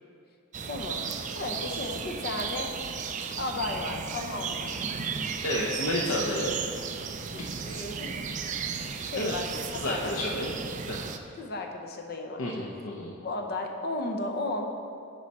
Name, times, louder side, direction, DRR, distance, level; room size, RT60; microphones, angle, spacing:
sound 1, 0.5-11.2, right 6 dB, 35° right, 0.4 m, -35 dB
voice 1, 0.6-1.0 1.3-2.7 3.4-5.0 7.3-8.2 9.0-9.5 9.8-10.4 11.4-12.4 13.2-14.7, left 2 dB, 50° left, 3 dB, 0.8 m, -34 dB
voice 2, 5.4-6.5 7.4-7.5 9.1-9.3 9.7-10.6 10.9-11.0 12.4-13.1, left 1 dB, 80° left, -4 dB, 0.8 m, -30 dB
11.0 x 4.8 x 4.2 m, 2.5 s
head